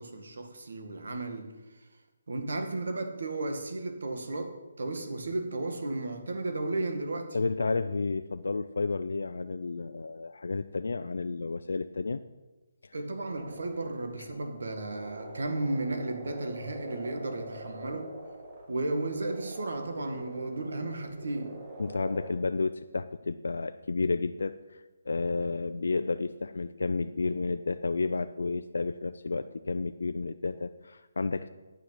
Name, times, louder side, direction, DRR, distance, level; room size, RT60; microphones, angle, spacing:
voice 1, 0.0-1.6 2.3-7.4 12.9-18.1 18.7-21.6, right 2 dB, 60° right, 6 dB, 1.8 m, -34 dB
voice 2, 7.3-12.2 12.8-12.9 21.8-31.5, left 3 dB, 80° left, 9 dB, 0.5 m, -31 dB
sound 1, 13.3-22.3, right 1 dB, 25° right, 1.8 m, -45 dB
9.8 x 9.4 x 6.0 m, 1.2 s
hypercardioid pair, 180°, 0 cm